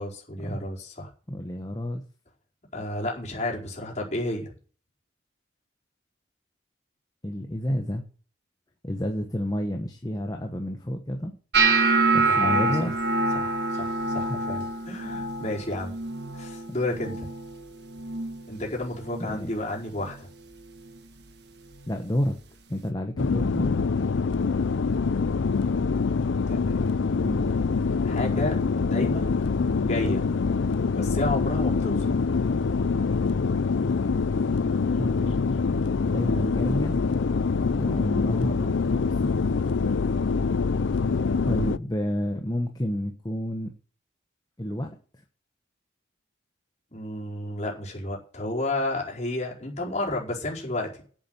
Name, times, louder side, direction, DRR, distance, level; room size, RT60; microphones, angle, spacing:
voice 1, 0.0-1.1 2.7-4.5 12.2-12.9 13.3-16.0 16.3-17.3 18.5-20.3 26.5-26.9 28.0-29.4 29.8-30.3 30.9-32.1 46.9-51.0, left 1 dB, 35° left, -2 dB, 4.6 m, -31 dB
voice 2, 1.3-2.0 7.2-8.0 8.8-11.4 12.1-12.9 14.3-14.4 19.2-19.5 21.9-22.4 22.7-23.8 27.2-27.5 34.9-35.4 36.0-37.0 37.8-39.3 41.4-43.7 44.6-45.0, left 1 dB, 20° left, 4 dB, 1.1 m, -30 dB
sound 1, 11.5-17.6 17.9-18.4 18.8-19.3 19.9-20.2 21.9-22.0, right 3 dB, 60° right, 1.5 m, -26 dB
sound 2, 23.2-41.8, left 4 dB, 90° left, 0.5 m, -25 dB
8.7 x 8.6 x 7.8 m, 0.42 s
head